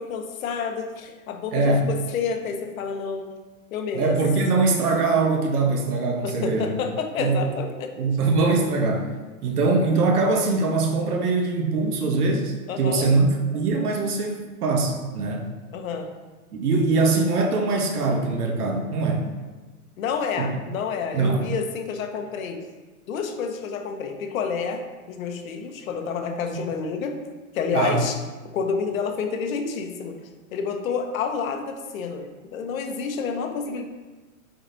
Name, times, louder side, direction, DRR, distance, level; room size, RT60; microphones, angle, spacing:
voice 1, 0.0-3.3 3.7-4.2 6.2-8.1 12.7-13.1 15.7-16.1 20.0-22.6 23.1-27.2 27.5-28.2 28.5-30.2 30.5-33.8, left 5 dB, 65° left, 5 dB, 1.0 m, -29 dB
voice 2, 1.5-1.9 3.9-6.7 7.2-7.5 7.9-9.1 9.4-15.5 16.5-19.3 20.4-20.5 21.1-21.5 26.5-26.6 27.7-28.0, right 3 dB, 85° right, 2 dB, 1.3 m, -22 dB
8.8 x 3.9 x 2.8 m, 1.3 s
hypercardioid pair, 145°, 44 cm